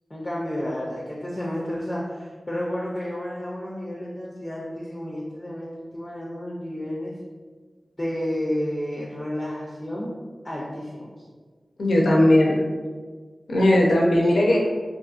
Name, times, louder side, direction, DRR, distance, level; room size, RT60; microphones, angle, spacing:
voice 1, 0.1-7.1 8.0-10.1 10.4-11.2, left 1 dB, 20° left, -6 dB, 0.5 m, -31 dB
voice 2, 11.8-12.6 13.5-14.6, left 1 dB, 90° left, -3 dB, 0.5 m, -18 dB
2.6 x 2.6 x 2.4 m, 1.5 s
wide cardioid pair, 65°, 0 cm